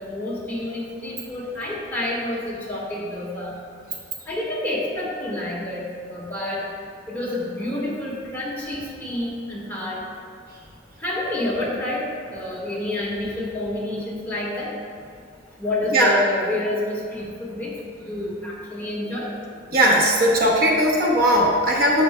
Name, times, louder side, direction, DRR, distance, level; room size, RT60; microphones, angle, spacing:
voice 1, 0.0-3.5 4.3-6.6 7.1-10.0 11.0-12.0 12.3-14.7 15.6-17.7 18.0-19.3, left 1 dB, 10° left, -6 dB, 1.7 m, -28 dB
voice 2, 19.7-22.0, equal, 50° right, -2 dB, 0.9 m, -18 dB
11.0 x 7.8 x 2.2 m, 2.2 s
head